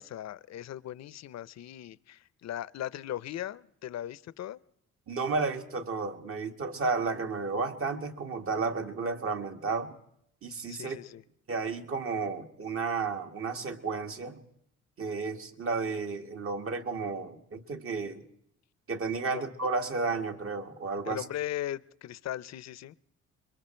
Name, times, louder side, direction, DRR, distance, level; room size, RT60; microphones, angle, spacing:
voice 1, 0.0-4.6 10.7-11.2 19.3-19.4 21.1-22.9, left 12 dB, 60° left, 19 dB, 0.7 m, -38 dB
voice 2, 5.1-9.9 10.4-11.0 11.5-14.4 15.0-18.2 18.9-21.2, right 4 dB, 45° right, 5 dB, 1.9 m, -32 dB
26.5 x 23.0 x 4.5 m, 0.72 s
cardioid pair, 90°, 30 cm